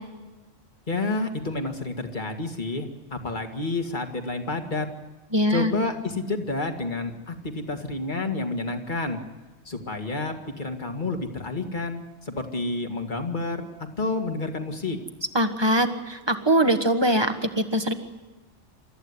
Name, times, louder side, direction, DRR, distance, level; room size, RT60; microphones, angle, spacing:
voice 1, 0.9-4.9 5.5-9.2 9.7-13.6 14.0-15.0, left 2 dB, 40° left, 5 dB, 2.1 m, -29 dB
voice 2, 5.3-5.7 15.3-17.9, right 1 dB, 20° right, 7 dB, 1.5 m, -22 dB
28.5 x 14.0 x 9.8 m, 1.2 s
omnidirectional pair, 1.3 m